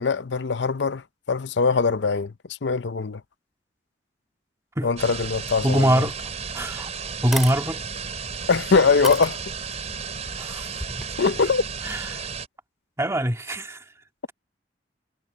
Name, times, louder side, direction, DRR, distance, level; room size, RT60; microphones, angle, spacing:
voice 1, 0.0-2.3 2.6-3.2 4.8-6.1 8.5-9.4 11.2-11.6, left 4 dB, 75° left, 0.6 m, -22 dB
sound 1, 5.0-12.5, right 5 dB, 40° right, 4.3 m, -33 dB
voice 2, 5.6-6.2 6.5-6.9 7.2-7.8 10.4-10.7 11.2-11.3 11.8-12.3 13.0-13.8, right 1 dB, 15° right, 2.1 m, -23 dB
sound 2, 6.1-6.2 6.6-6.7 7.2-7.6 8.3-8.4 9.0-9.8 10.7-11.1, equal, ahead, 2.6 m, -32 dB
head